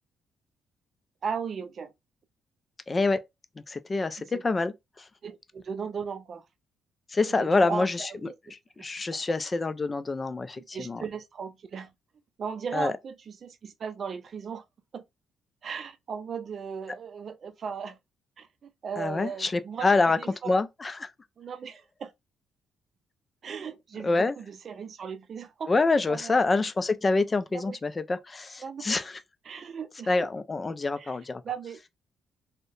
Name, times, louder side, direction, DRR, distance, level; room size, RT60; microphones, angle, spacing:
voice 1, 1.2-1.9 4.2-4.4 5.2-6.4 7.3-8.5 9.1-9.2 10.6-11.9 12.4-14.6 14.9-15.0 15.6-18.0 18.4-20.6 21.4-22.1 23.4-26.4 27.5-27.8 28.6-28.9 29.4-30.3 31.0-31.2 31.4-31.9, right 6 dB, 50° right, 0.4 m, -37 dB
voice 2, 2.9-3.3 3.7-5.0 7.1-11.0 12.7-12.9 19.0-20.2 20.5-21.1 24.0-24.3 25.7-29.2 30.1-31.4, left 3 dB, 25° left, 0.4 m, -26 dB
2.7 x 2.1 x 2.5 m
cardioid pair, 90°, 0 cm